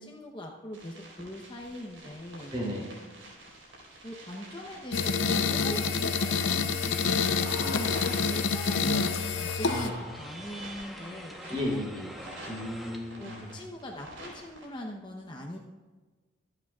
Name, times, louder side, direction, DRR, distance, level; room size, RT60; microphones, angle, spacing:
voice 1, 0.0-2.5 4.0-9.9 10.2-11.8 13.2-15.6, left 1 dB, 25° left, 0 dB, 0.9 m, -41 dB
sound 1, 0.7-14.7, right 1 dB, 80° right, 4.4 m, -48 dB
voice 2, 2.5-2.9 7.4-8.1 9.6-10.2 11.5-12.1 12.5-13.5, left 1 dB, 25° right, -2 dB, 3.3 m, -35 dB
sound 2, 4.9-9.9, left 5 dB, 80° left, 0.7 m, -27 dB
sound 3, 6.9-13.6, equal, ahead, 1.0 m, -47 dB
24.5 x 9.0 x 2.4 m, 1.3 s
head